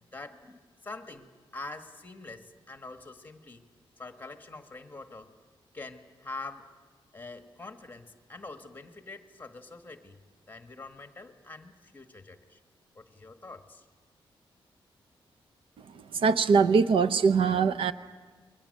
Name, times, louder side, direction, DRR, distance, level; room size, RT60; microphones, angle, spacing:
voice 1, 0.1-3.6 4.0-5.3 5.7-6.7 7.1-10.2 10.5-12.6 12.9-13.8, left 3 dB, 20° left, 7 dB, 1.4 m, -45 dB
voice 2, 16.1-17.9, right 5 dB, 70° right, 11 dB, 0.7 m, -22 dB
29.5 x 22.0 x 6.5 m, 1.5 s
wide cardioid pair, 160°, 9 cm